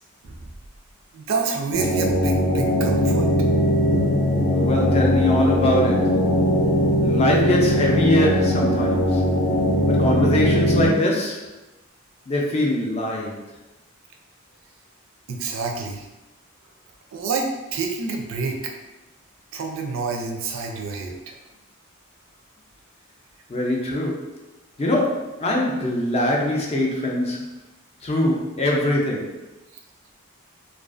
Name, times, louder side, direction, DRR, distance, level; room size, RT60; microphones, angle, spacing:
voice 1, 1.1-3.3 15.3-16.1 17.1-18.7 19.5-21.3, right 4 dB, 75° right, 2 dB, 0.4 m, -28 dB
sound 1, 1.7-10.9, equal, 70° left, 0.7 m, -20 dB
voice 2, 4.5-6.2 7.0-9.2 9.9-11.5 12.3-13.4 23.5-24.3 24.8-27.4 28.0-29.3, left 1 dB, 30° left, -1 dB, 0.4 m, -22 dB
2.4 x 2.4 x 2.4 m, 1.0 s
head